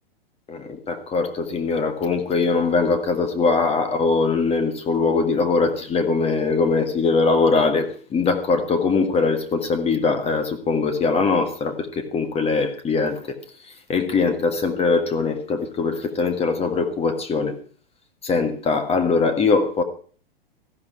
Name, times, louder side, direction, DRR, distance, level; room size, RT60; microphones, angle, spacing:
voice 1, 0.5-13.4 13.9-17.5 18.2-19.8, left 4 dB, 20° left, 1.7 m, -21 dB
14.5 x 11.5 x 4.9 m
figure-of-eight pair, 100°, 29 cm